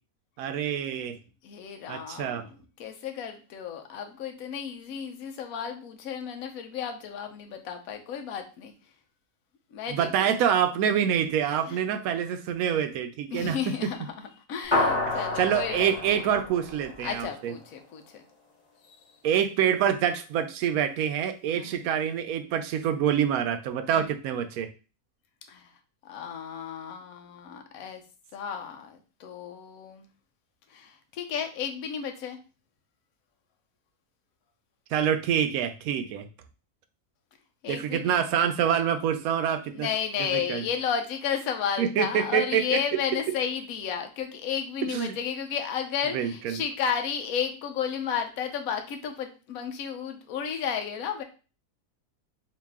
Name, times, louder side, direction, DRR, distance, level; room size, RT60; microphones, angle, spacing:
voice 1, 0.4-1.2 1.9-2.4 9.9-13.6 15.1-17.5 19.2-24.7 34.9-36.3 37.7-39.9 40.3-40.6 41.8-42.8 44.9-45.1 46.1-46.6, right 9 dB, 70° right, 8 dB, 1.0 m, -26 dB
voice 2, 1.4-8.7 9.7-10.3 11.7-11.8 13.3-16.3 17.0-18.2 18.9-19.0 21.6-21.8 23.9-24.1 25.5-25.7 26.0-28.0 28.3-30.1 30.7-32.4 37.6-38.2 39.7-51.2, left 7 dB, 70° left, 5 dB, 1.1 m, -33 dB
sound 1, 14.7-17.4, left 2 dB, 25° left, 2.0 m, -29 dB
3.9 x 2.6 x 3.5 m, 0.33 s
omnidirectional pair, 1.6 m